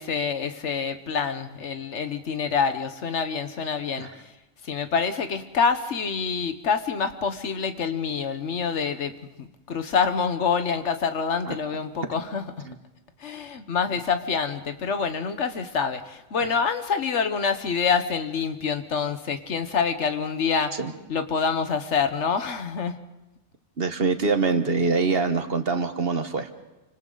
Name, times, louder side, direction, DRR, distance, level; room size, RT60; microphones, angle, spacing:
voice 1, 0.0-4.3 4.6-12.7 13.2-20.8 21.1-23.0, left 6 dB, 70° left, 9 dB, 1.4 m, -26 dB
voice 2, 23.8-26.5, right 4 dB, 55° right, 8 dB, 1.4 m, -24 dB
29.0 x 25.5 x 3.9 m, 1.0 s
omnidirectional pair, 1.3 m